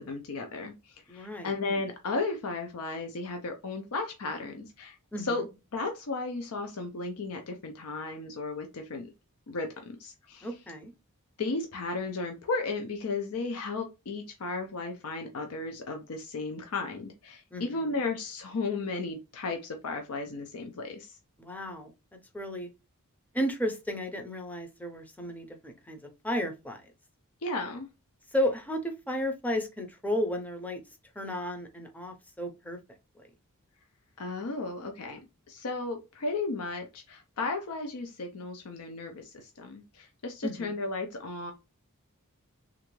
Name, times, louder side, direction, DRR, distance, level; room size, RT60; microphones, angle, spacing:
voice 1, 0.0-5.4 5.7-9.1 9.5-10.5 11.4-21.2 27.4-27.9 34.2-35.2 35.5-41.5, left 3 dB, 75° left, 0.6 m, -34 dB
voice 2, 1.1-1.5 5.1-5.4 10.4-10.9 17.5-18.0 21.4-21.9 22.3-22.7 23.3-26.0 26.2-26.8 28.3-30.8 31.2-32.8 40.4-40.8, equal, 5° left, 0.5 m, -33 dB
3.4 x 2.5 x 3.0 m
head